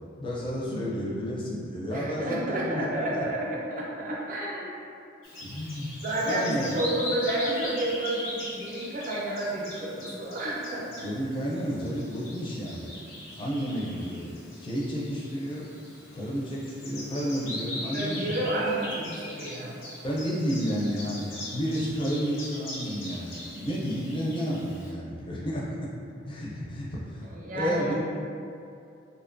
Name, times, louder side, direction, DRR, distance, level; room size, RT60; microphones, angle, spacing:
voice 1, 0.2-3.2 5.4-6.0 6.2-6.9 11.0-15.6 16.1-18.3 20.0-25.8 26.3-27.3 27.5-28.0, equal, 25° left, -5 dB, 0.4 m, -31 dB
voice 2, 1.9-4.7 6.0-11.1 17.9-19.7 27.2-28.0, right 1 dB, 45° right, -4 dB, 0.4 m, -31 dB
Bird vocalization bird call bird song, 5.2-24.9, left 1 dB, 85° left, 0.6 m, -40 dB
2.7 x 2.2 x 2.5 m, 2.5 s
head